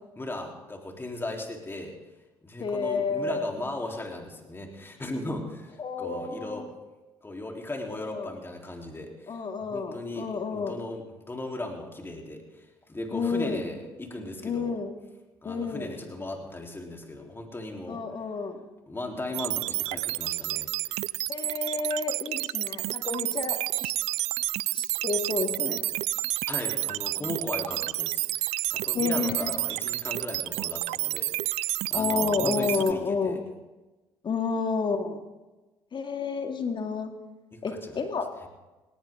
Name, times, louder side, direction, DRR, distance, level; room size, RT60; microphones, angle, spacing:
voice 1, 0.2-1.9 2.4-6.7 7.2-14.8 15.4-18.0 18.9-21.0 21.4-21.5 26.5-33.4 37.5-37.9, left 2 dB, 20° left, 1 dB, 3.9 m, -37 dB
voice 2, 2.6-3.5 5.8-6.7 7.9-8.4 9.3-10.7 13.1-13.7 14.4-15.0 15.4-16.0 17.9-18.6 21.3-23.9 24.7-25.8 28.9-29.6 31.9-33.4 34.2-35.2 35.9-37.1 37.6-38.3, left 4 dB, 45° left, 5 dB, 2.2 m, -30 dB
sound 1, 19.3-32.9, right 18 dB, 70° right, 0.4 m, -30 dB
18.5 x 18.5 x 3.9 m, 1.1 s
hypercardioid pair, 60°, 12 cm